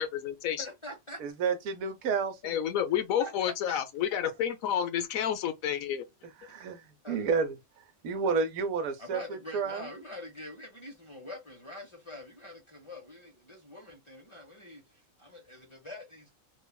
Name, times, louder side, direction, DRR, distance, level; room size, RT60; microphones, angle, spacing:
voice 1, 0.0-0.6 2.4-6.1, left 9 dB, 75° left, 1.0 m, -30 dB
voice 2, 0.6-1.2 3.2-3.3 3.7-3.8 6.5-6.7 7.0-7.3 9.0-16.3, left 1 dB, 35° left, 0.5 m, -45 dB
voice 3, 1.2-2.6 6.4-7.5 8.0-9.9, right 5 dB, 80° right, 1.1 m, -30 dB
3.1 x 2.3 x 2.2 m
omnidirectional pair, 1.5 m